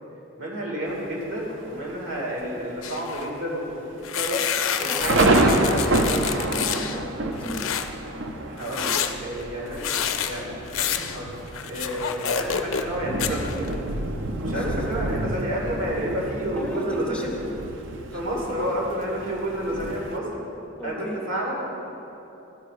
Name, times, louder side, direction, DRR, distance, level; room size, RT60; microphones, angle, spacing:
voice 1, 0.4-5.8 8.5-9.0 9.2-11.4 11.7-13.7 14.4-17.3 18.1-20.3 20.8-21.7, equal, 80° right, -3 dB, 2.2 m, -30 dB
Thunder, 0.9-1.4 2.0-2.1 2.3-2.8 3.1-3.2 3.9-20.2, right 2 dB, 60° right, 0.6 m, -28 dB
sound 1, 2.8-3.3 4.0-7.0 7.4-7.9 8.6-12.9 13.2-13.7, left 8 dB, 75° left, 0.5 m, -28 dB
voice 2, 4.9-7.8 14.5-14.7 16.6-17.3 18.1-18.2 20.8-21.2, left 1 dB, 5° left, -1 dB, 0.7 m, -35 dB
13.0 x 4.5 x 5.0 m, 2.9 s
head